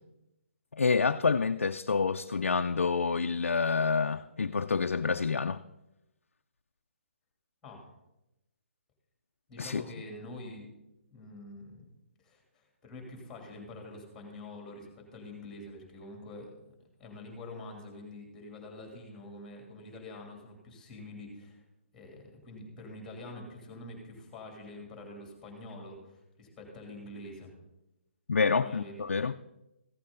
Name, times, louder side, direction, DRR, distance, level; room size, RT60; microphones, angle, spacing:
voice 1, 0.7-5.6 9.6-9.8 28.3-29.3, left 5 dB, 85° left, 0.4 m, -28 dB
voice 2, 9.5-10.7 11.1-11.9 12.2-21.6 21.9-27.5 28.5-29.1, left 2 dB, 5° left, 3.0 m, -46 dB
15.0 x 8.4 x 3.9 m
hypercardioid pair, 145°, 7 cm